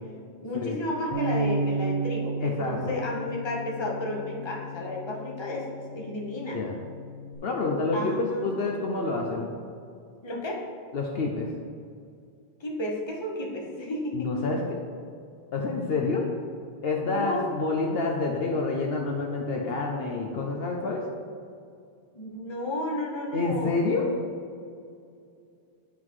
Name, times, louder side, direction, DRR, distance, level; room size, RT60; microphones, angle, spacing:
voice 1, 0.4-6.6 7.9-8.5 10.2-10.6 12.6-14.3 16.9-17.5 22.1-23.8, left 1 dB, 25° left, -1 dB, 1.1 m, -32 dB
Bass guitar, 1.1-7.4, right 2 dB, 55° right, 1.2 m, -33 dB
voice 2, 2.4-2.9 6.5-6.8 7.4-9.5 10.9-11.5 14.1-14.8 15.5-16.2 16.8-21.0 23.3-24.1, left 3 dB, 65° left, 0 dB, 0.9 m, -28 dB
10.5 x 3.8 x 4.7 m, 2.4 s
omnidirectional pair, 1.1 m